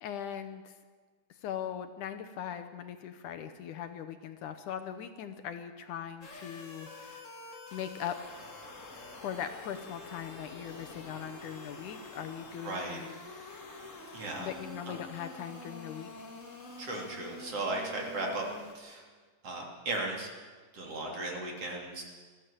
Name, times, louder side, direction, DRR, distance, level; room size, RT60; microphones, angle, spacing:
voice 1, 0.0-0.7 1.3-8.2 9.2-13.2 14.4-16.1, left 9 dB, 70° left, 9 dB, 2.2 m, -40 dB
sound 1, 6.2-18.7, left 2 dB, 30° left, 1.8 m, -47 dB
voice 2, 12.6-13.0 14.1-14.5 16.8-18.4 18.7-19.0 19.4-20.3 20.7-22.0, right 2 dB, 45° right, 0 dB, 3.9 m, -36 dB
20.5 x 14.5 x 8.9 m, 1.5 s
omnidirectional pair, 4.0 m